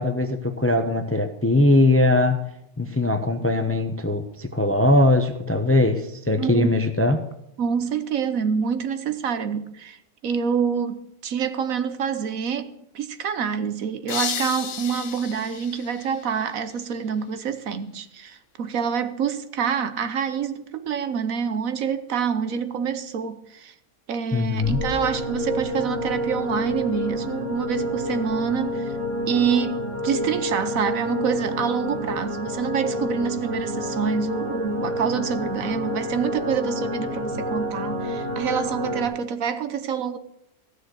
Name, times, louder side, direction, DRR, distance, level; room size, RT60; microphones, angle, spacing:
voice 1, 0.0-2.4 2.8-7.2 24.3-24.8, left 2 dB, 10° left, 0.7 m, -20 dB
voice 2, 6.4-6.8 7.6-23.7 24.1-28.9 29.3-40.2, right 7 dB, 70° right, 1.3 m, -26 dB
sound 1, 14.1-16.9, left 8 dB, 55° left, 0.8 m, -33 dB
sound 2, 24.6-39.0, equal, 55° right, 3.2 m, -29 dB
15.5 x 6.5 x 8.1 m
omnidirectional pair, 1.5 m